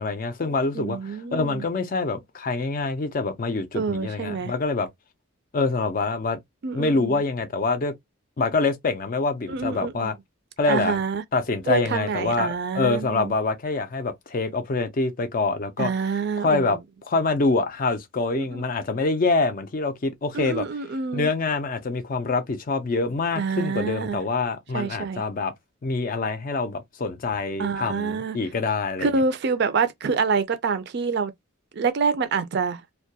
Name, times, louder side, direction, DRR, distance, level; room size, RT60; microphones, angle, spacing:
voice 1, 0.0-4.9 5.5-6.4 6.7-7.9 8.4-10.1 10.6-11.0 11.3-15.9 16.4-16.8 17.1-20.7 21.1-25.5 25.8-29.1, left 3 dB, 40° left, 0.4 m, -25 dB
voice 2, 0.7-1.6 3.7-4.5 6.6-7.2 9.5-10.1 10.7-11.2 11.7-13.3 15.8-16.8 18.3-18.6 20.3-21.3 23.4-24.2 24.7-25.2 27.6-28.4 29.0-31.3 31.7-32.8, right 5 dB, 50° right, 0.4 m, -26 dB
2.2 x 2.2 x 2.7 m
head